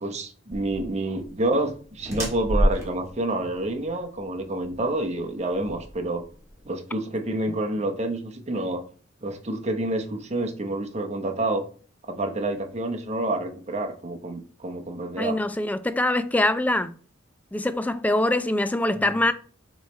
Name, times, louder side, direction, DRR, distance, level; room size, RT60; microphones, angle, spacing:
voice 1, 0.0-6.2 6.6-8.8 9.2-11.6 12.1-15.4 18.9-19.0, right 2 dB, 35° right, 0.9 m, -28 dB
sound 1, 0.5-6.6, equal, 15° right, 2.0 m, -30 dB
voice 2, 15.2-16.9 17.5-19.3, left 1 dB, 10° left, 0.3 m, -23 dB
7.0 x 3.2 x 4.3 m
head